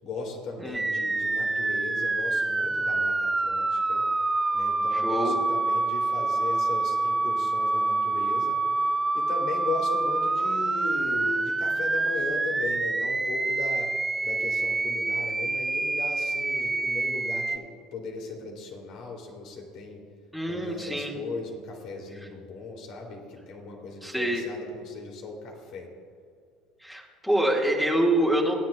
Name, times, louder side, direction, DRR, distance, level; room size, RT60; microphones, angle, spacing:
voice 1, 0.0-4.0 4.5-13.9 14.2-20.0 20.4-25.9, left 3 dB, 55° left, 1 dB, 3.1 m, -37 dB
voice 2, 0.6-1.1 4.9-5.4 20.3-21.1 24.0-24.4 26.8-28.6, right 1 dB, 5° left, -2 dB, 2.1 m, -26 dB
sound 1, 0.7-17.6, right 3 dB, 15° right, 0.6 m, -27 dB
28.0 x 10.5 x 2.4 m, 2.3 s
hypercardioid pair, 65°, 0 cm